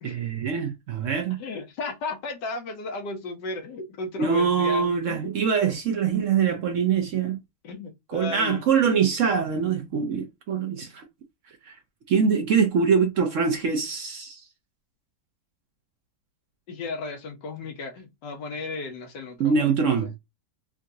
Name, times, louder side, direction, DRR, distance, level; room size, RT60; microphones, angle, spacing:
voice 1, 0.0-1.4 4.2-7.4 8.1-11.0 11.6-11.8 12.1-14.4 19.4-20.1, right 6 dB, 60° right, 0.8 m, -24 dB
voice 2, 1.4-5.3 7.6-8.6 16.7-20.1, left 3 dB, 90° left, 1.5 m, -35 dB
3.8 x 2.4 x 2.6 m
omnidirectional pair, 1.8 m